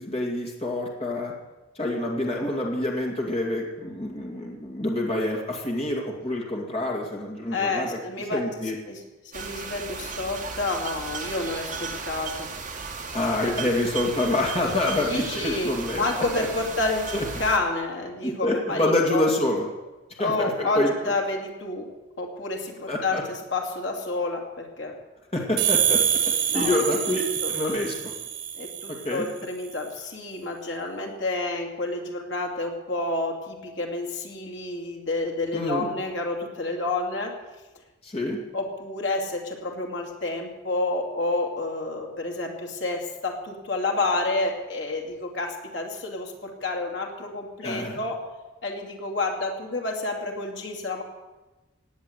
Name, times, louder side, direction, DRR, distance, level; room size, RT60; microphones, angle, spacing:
voice 1, 0.0-1.3 1.8-8.0 8.3-8.8 13.1-16.5 17.1-17.2 18.2-19.7 20.1-20.9 22.9-23.2 25.3-26.0 26.5-28.1 29.0-29.3 35.5-35.9 38.0-38.4 47.6-48.0, left 1 dB, 30° left, -1 dB, 2.3 m, -27 dB
voice 2, 7.5-8.4 8.9-9.0 9.3-12.5 13.4-13.5 15.1-19.3 20.2-21.9 22.2-24.9 26.5-26.8 27.4-27.5 28.6-37.3 38.5-48.2 48.6-51.0, left 2 dB, 60° left, 1 dB, 2.6 m, -29 dB
sound 1, 9.3-17.6, right 4 dB, 40° right, 2.2 m, -35 dB
sound 2, 25.6-29.1, right 9 dB, 75° right, 3.3 m, -26 dB
17.5 x 9.6 x 8.1 m, 1.1 s
head